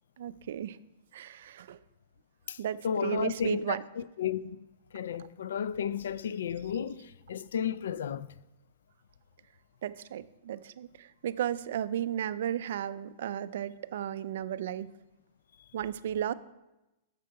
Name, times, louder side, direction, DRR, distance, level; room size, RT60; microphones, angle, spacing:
voice 1, 0.2-0.8 1.1-1.8 2.6-3.8 9.8-14.9 15.7-16.3, right 10 dB, 65° right, 0.3 m, -34 dB
voice 2, 2.8-4.7 4.9-8.3, left 8 dB, 80° left, 0.3 m, -33 dB
6.7 x 6.3 x 4.6 m
hypercardioid pair, 155°, 0 cm